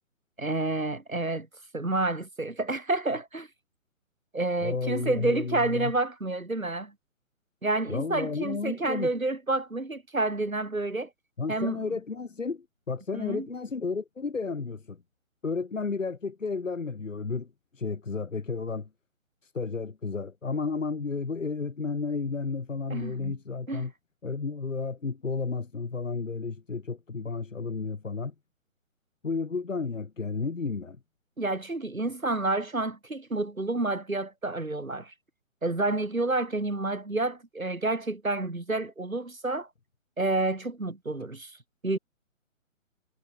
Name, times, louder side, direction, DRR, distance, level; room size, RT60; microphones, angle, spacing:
voice 1, 0.4-1.5 1.7-3.5 4.3-6.9 7.6-11.1 11.5-11.8 13.1-13.5 22.9-23.3 23.7-23.9 31.4-35.1 35.6-39.7 40.2-41.6 41.8-42.0, right 2 dB, 85° right, 3.4 m, -29 dB
voice 2, 4.6-5.9 7.9-9.1 11.4-15.0 15.4-17.5 17.7-18.9 19.4-23.9 24.2-28.3 29.2-31.0, left 4 dB, 70° left, 3.0 m, -32 dB
figure-of-eight pair, 140°, 40 cm